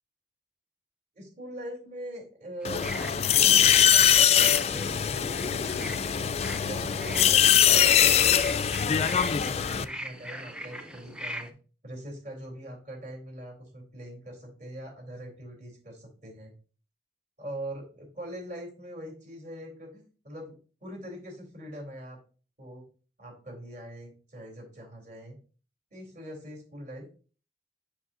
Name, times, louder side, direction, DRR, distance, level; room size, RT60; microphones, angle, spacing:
voice 1, 1.2-5.6 6.6-11.5 11.8-16.5 17.4-20.5 20.8-22.2 22.6-22.8 23.2-25.4 25.9-27.1, right 1 dB, 45° right, 0 dB, 3.3 m, -42 dB
sound 1, 2.6-9.8, left 9 dB, 35° left, 0.3 m, -22 dB
sound 2, 2.6-11.5, equal, 5° right, 0.6 m, -41 dB
7.1 x 6.7 x 2.6 m, 0.38 s
head